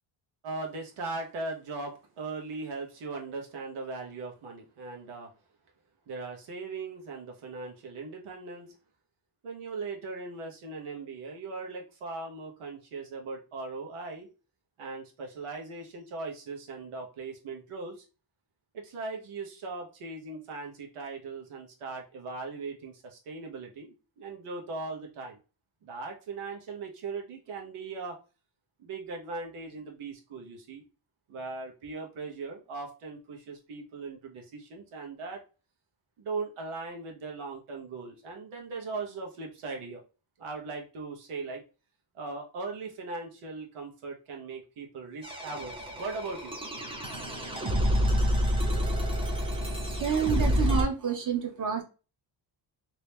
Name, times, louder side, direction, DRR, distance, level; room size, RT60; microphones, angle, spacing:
voice 1, 0.4-5.3 6.1-8.7 9.4-14.3 14.8-18.0 18.7-25.4 25.8-28.2 28.8-30.8 31.3-35.4 36.2-40.0 40.4-41.6 42.1-46.6, right 3 dB, 85° right, 1 dB, 1.2 m, -39 dB
sound 1, 45.2-50.8, equal, 10° right, 0.6 m, -28 dB
voice 2, 50.0-51.8, right 7 dB, 40° right, 4 dB, 0.8 m, -29 dB
3.0 x 2.9 x 3.3 m, 0.33 s
wide cardioid pair, 165°, 49 cm